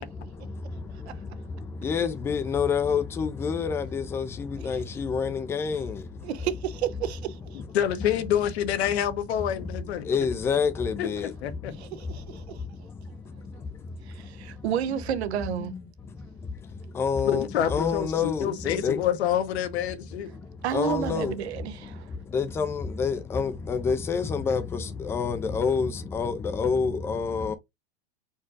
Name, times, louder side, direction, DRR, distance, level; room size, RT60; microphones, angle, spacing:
voice 1, 0.0-6.3 7.6-7.7 8.0-8.2 9.5-15.0 15.5-19.1 20.1-27.5, left 5 dB, 10° left, 0.3 m, -29 dB
voice 2, 6.2-7.6 11.7-12.6 14.1-15.7 20.6-22.1, right 9 dB, 85° right, 0.8 m, -31 dB
voice 3, 7.7-10.1 11.0-11.7 17.2-20.3, left 10 dB, 80° left, 1.1 m, -27 dB
4.4 x 2.3 x 4.6 m
supercardioid pair, 145°, 32 cm